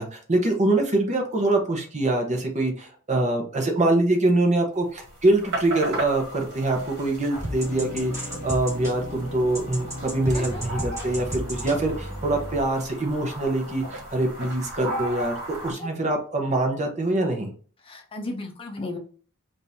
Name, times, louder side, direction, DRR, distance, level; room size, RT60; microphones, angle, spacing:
voice 1, 0.0-15.4 15.6-17.5, right 2 dB, 30° right, 3 dB, 1.0 m, -24 dB
sound 1, 4.9-15.7, right 1 dB, 55° right, 1.8 m, -36 dB
sound 2, 7.4-12.6, equal, 15° right, 1.9 m, -33 dB
voice 2, 17.8-19.0, left 2 dB, 25° left, 3 dB, 0.7 m, -34 dB
5.3 x 2.7 x 2.8 m, 0.41 s
head